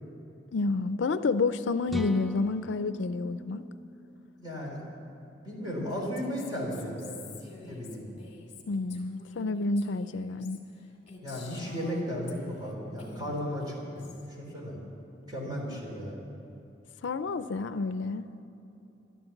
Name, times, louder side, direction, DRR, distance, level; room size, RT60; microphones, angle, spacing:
voice 1, 0.5-3.7 8.7-10.6 15.7-15.8 17.0-18.3, left 3 dB, 75° left, 13 dB, 0.5 m, -29 dB
sound 1, 1.9-5.7, right 1 dB, ahead, 0.4 m, -41 dB
voice 2, 4.4-4.8 5.4-7.3 7.7-8.0 11.1-14.8 15.3-16.2, equal, 20° right, -3 dB, 3.6 m, -35 dB
Female speech woman speaking, 5.9-12.7 13.0-14.3, left 3 dB, 35° left, 2.1 m, -49 dB
13.5 x 11.5 x 7.1 m, 2.9 s
head